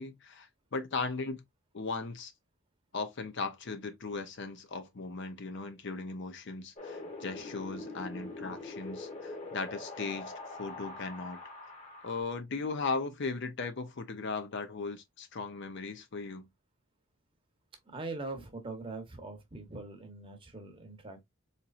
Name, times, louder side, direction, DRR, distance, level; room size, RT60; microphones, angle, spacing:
voice 1, 0.0-1.4 1.7-2.3 2.9-10.3 10.6-11.4 12.0-16.5, left 4 dB, 50° left, 0.6 m, -37 dB
Wind, 6.8-12.2, left 2 dB, 35° left, 1.1 m, -43 dB
voice 2, 17.8-21.2, right 3 dB, 25° right, 0.9 m, -42 dB
4.1 x 3.0 x 2.4 m
head